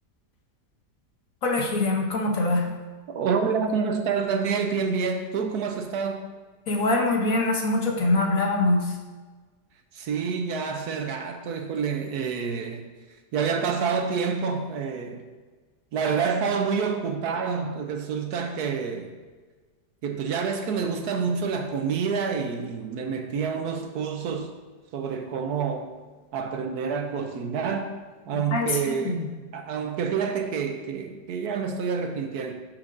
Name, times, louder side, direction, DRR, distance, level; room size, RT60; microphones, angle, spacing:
voice 1, 1.4-2.6 6.7-8.8 28.5-28.7 29.0-29.3, left 2 dB, 55° left, 1 dB, 1.2 m, -23 dB
voice 2, 3.1-6.2 9.9-12.8 13.3-15.2 15.9-19.1 20.0-24.5 24.9-25.9 26.3-27.9 28.3-29.3 29.5-32.5, right 6 dB, 70° right, 5 dB, 1.1 m, -28 dB
11.5 x 6.0 x 2.6 m, 1.4 s
omnidirectional pair, 1.9 m